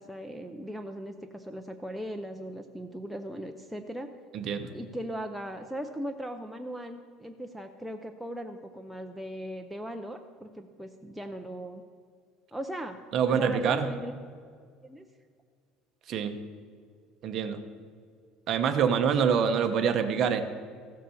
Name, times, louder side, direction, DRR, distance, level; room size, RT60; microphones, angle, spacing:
voice 1, 0.0-4.1 4.7-11.8 12.5-13.0 13.3-14.1 14.8-15.0, right 1 dB, ahead, 3 dB, 0.5 m, -38 dB
voice 2, 4.3-4.7 13.1-13.9 16.1-16.4 17.2-17.6 18.5-20.4, right 7 dB, 35° right, 7 dB, 0.9 m, -25 dB
15.0 x 7.5 x 7.0 m, 2.1 s
cardioid pair, 170°, 0 cm